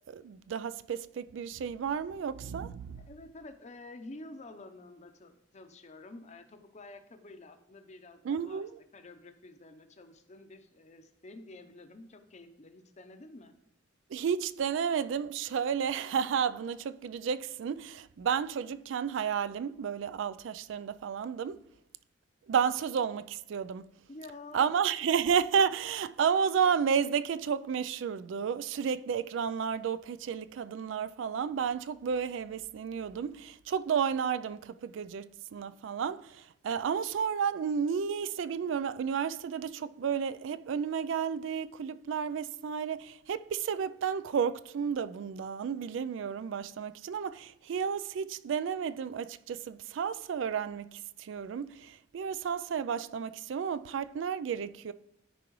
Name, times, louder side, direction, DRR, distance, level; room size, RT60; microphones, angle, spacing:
voice 1, 0.1-3.0 8.2-8.7 14.1-21.6 22.5-23.9 24.5-54.9, right 7 dB, 70° right, 0.3 m, -32 dB
voice 2, 3.0-8.7 8.9-13.6 24.1-24.8, left 2 dB, 40° left, 0.7 m, -49 dB
13.5 x 4.7 x 3.1 m
head